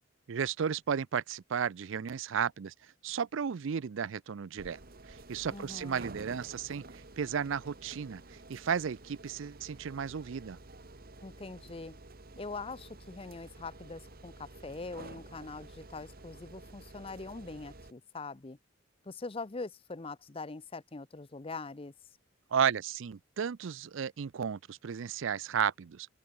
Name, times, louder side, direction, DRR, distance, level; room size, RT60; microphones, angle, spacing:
voice 1, 0.3-2.7 3.0-4.8 5.1-10.6 22.5-26.1, right 7 dB, 65° right, 0.4 m, -33 dB
sound 1, 4.6-17.9, right 2 dB, 45° right, 1.6 m, -51 dB
voice 2, 5.5-6.1 11.2-12.0 12.4-18.6 19.0-21.9, left 3 dB, 25° left, 0.6 m, -43 dB
open air
head